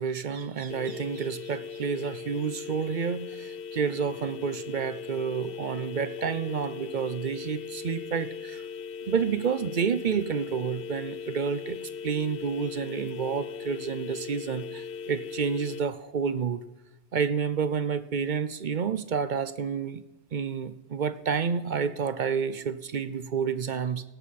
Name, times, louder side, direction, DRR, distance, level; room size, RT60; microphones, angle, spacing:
voice 1, 0.0-8.6 9.1-16.6 17.1-20.0 20.3-24.0, right 6 dB, 55° right, 12 dB, 0.6 m, -29 dB
sound 1, 0.7-15.8, left 6 dB, 60° left, 0.8 m, -39 dB
17.5 x 7.4 x 4.1 m, 1.0 s
omnidirectional pair, 1.2 m